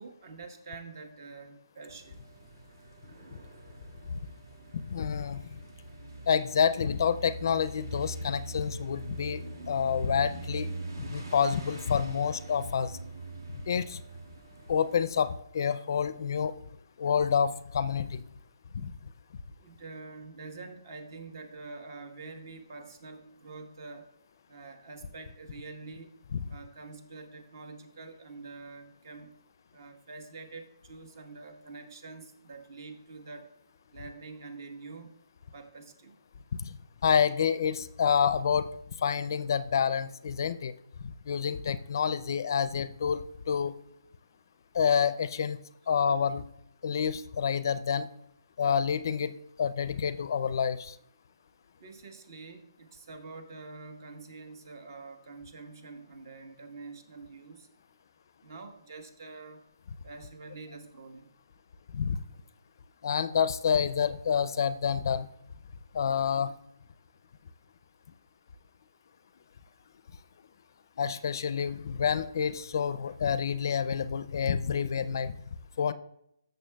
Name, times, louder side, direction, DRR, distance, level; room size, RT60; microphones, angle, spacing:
voice 1, 0.0-2.3 19.6-24.1 24.5-26.1 26.5-29.3 29.7-33.5 33.9-35.1 35.5-36.2 51.8-57.7 58.4-59.6 60.0-61.3, right 3 dB, 50° right, 7 dB, 1.2 m, -46 dB
sound 1, 1.9-15.3, right 2 dB, 65° right, 2.0 m, -43 dB
voice 2, 4.7-5.4 6.3-9.4 9.7-10.7 11.1-12.9 13.7-14.0 14.7-16.6 17.0-18.2 18.7-18.9 37.0-38.7 39.0-40.7 41.3-43.7 44.7-45.6 45.9-46.4 46.8-48.1 48.6-50.9 61.9-62.2 63.0-65.3 65.9-66.5 71.0-75.3 75.8-75.9, left 7 dB, 55° left, 14 dB, 0.4 m, -28 dB
14.0 x 6.7 x 2.3 m, 0.77 s
hypercardioid pair, 150°, 2 cm